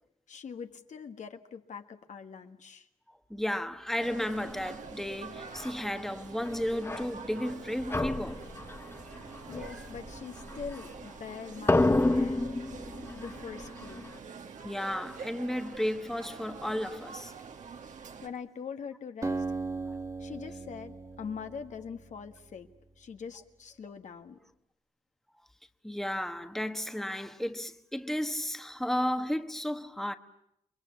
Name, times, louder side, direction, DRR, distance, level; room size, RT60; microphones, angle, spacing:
voice 1, 0.3-2.9 9.5-12.5 13.1-14.1 18.2-19.4 20.2-22.7 23.0-24.4, left 6 dB, 70° left, 1.7 m, -43 dB
voice 2, 3.1-8.5 9.1-9.2 9.4-9.5 14.6-17.3 25.8-30.2, equal, 5° left, 1.3 m, -33 dB
sound 1, 4.0-18.3, right 6 dB, 75° right, 2.2 m, -46 dB
sound 2, 5.4-5.8 6.4-7.6 7.9-11.3 11.6-14.2, left 2 dB, 20° left, 1.1 m, -31 dB
Acoustic guitar, 19.2-22.8, right 3 dB, 25° right, 1.9 m, -38 dB
29.5 x 22.0 x 8.4 m
cardioid pair, 85°, 13 cm